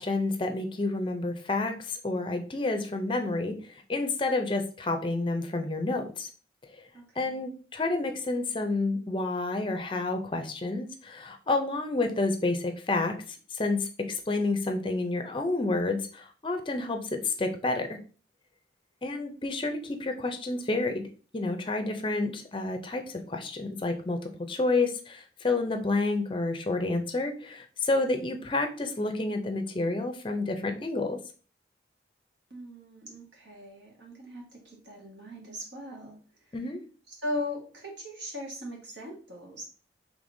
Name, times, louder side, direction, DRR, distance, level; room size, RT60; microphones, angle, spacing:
voice 1, 0.0-6.3 6.7-6.8 7.2-18.0 19.0-21.0 21.3-31.2 36.5-36.8, left 2 dB, 25° left, 5 dB, 0.5 m, -29 dB
voice 2, 6.9-7.4 32.5-36.2 37.1-39.6, left 1 dB, 75° right, 0 dB, 1.4 m, -39 dB
5.1 x 3.2 x 2.6 m, 0.39 s
head